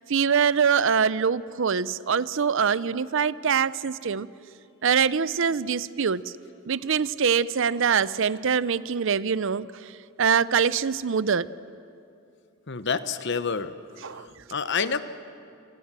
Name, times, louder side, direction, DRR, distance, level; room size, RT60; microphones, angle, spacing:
voice 1, 0.1-4.3 4.8-6.3 6.7-11.5 14.0-14.3, right 6 dB, 60° right, 18 dB, 0.6 m, -24 dB
voice 2, 12.7-13.7 14.0-15.0, left 5 dB, 55° left, 12 dB, 1.0 m, -28 dB
27.0 x 27.0 x 7.5 m, 2.5 s
head